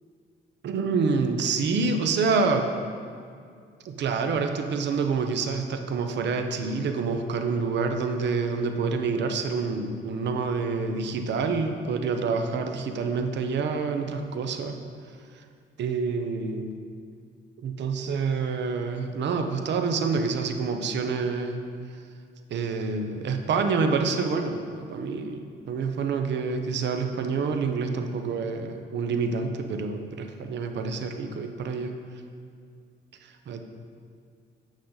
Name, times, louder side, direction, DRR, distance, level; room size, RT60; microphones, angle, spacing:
voice 1, 0.6-2.7 3.8-14.8 15.8-16.8 17.6-21.6 22.5-31.9 33.2-33.7, right 4 dB, 65° right, 6 dB, 0.7 m, -27 dB
8.3 x 6.5 x 4.0 m, 2.2 s
cardioid pair, 90°, 20 cm